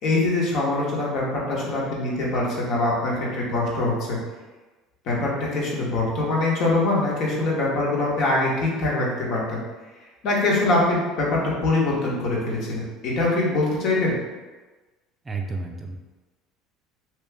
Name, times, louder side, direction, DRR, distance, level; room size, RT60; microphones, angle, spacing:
voice 1, 0.0-4.2 5.1-9.6 10.2-14.1, left 2 dB, 60° left, -4 dB, 1.2 m, -23 dB
voice 2, 15.3-16.0, right 3 dB, 25° right, 2 dB, 0.4 m, -31 dB
3.0 x 2.7 x 3.5 m, 1.2 s
supercardioid pair, 90°, 0 cm